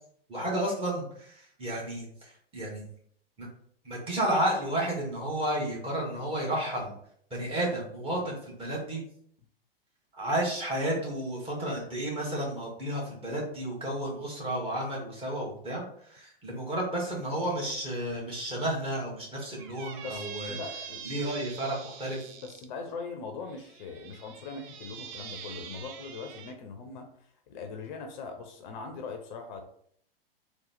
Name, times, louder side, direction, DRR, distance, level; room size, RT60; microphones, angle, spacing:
voice 1, 0.3-2.9 3.4-3.5 3.8-7.0 7.3-9.0 10.1-20.6 21.0-22.3, right 1 dB, 20° right, -4 dB, 1.6 m, -32 dB
Squeak, 19.6-22.7 23.5-26.6, right 7 dB, 35° right, 0.4 m, -44 dB
voice 2, 20.0-21.1 22.3-29.6, left 4 dB, 50° left, 5 dB, 0.7 m, -41 dB
3.9 x 2.3 x 4.1 m, 0.64 s
figure-of-eight pair, 105°, 30 cm